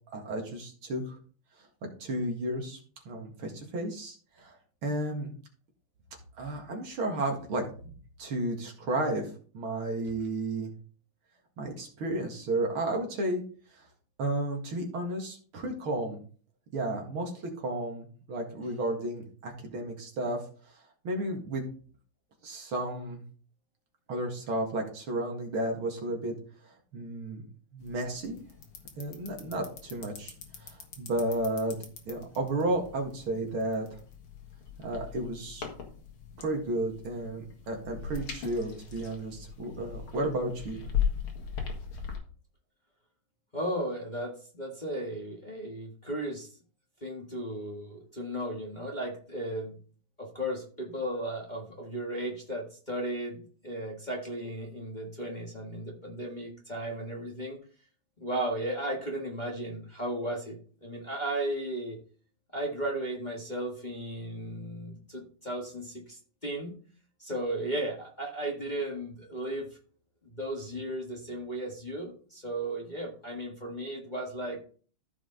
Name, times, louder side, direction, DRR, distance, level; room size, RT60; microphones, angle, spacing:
voice 1, 0.1-1.2 1.8-2.8 3.1-4.6 4.8-5.3 6.4-7.6 8.2-10.7 11.6-13.4 13.7-13.8 14.2-16.2 16.7-20.4 21.0-21.6 22.4-23.2 24.1-26.3 26.6-27.5 27.7-28.4 29.0-30.3 30.6-31.8 32.1-34.0 34.8-35.7 36.4-40.8, right 1 dB, 70° right, 2 dB, 2.7 m, -33 dB
sound 1, 27.8-42.2, left 8 dB, 70° left, 2.5 m, -39 dB
voice 2, 43.5-46.5 47.0-49.8 50.2-57.6 58.2-62.0 62.5-66.7 67.2-69.7 70.2-74.6, right 1 dB, 20° left, -1 dB, 1.6 m, -35 dB
14.0 x 4.9 x 3.9 m, 0.42 s
omnidirectional pair, 2.4 m